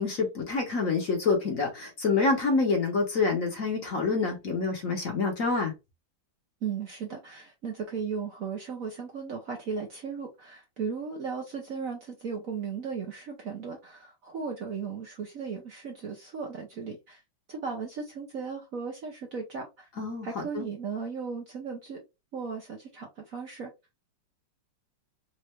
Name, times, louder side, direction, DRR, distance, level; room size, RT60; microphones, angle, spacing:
voice 1, 0.0-5.7 20.0-20.7, left 4 dB, 50° left, 1.3 m, -27 dB
voice 2, 6.6-17.2 17.5-19.9 20.2-22.0 22.3-23.7, right 5 dB, 55° right, 1.0 m, -36 dB
4.4 x 2.6 x 3.0 m
omnidirectional pair, 2.2 m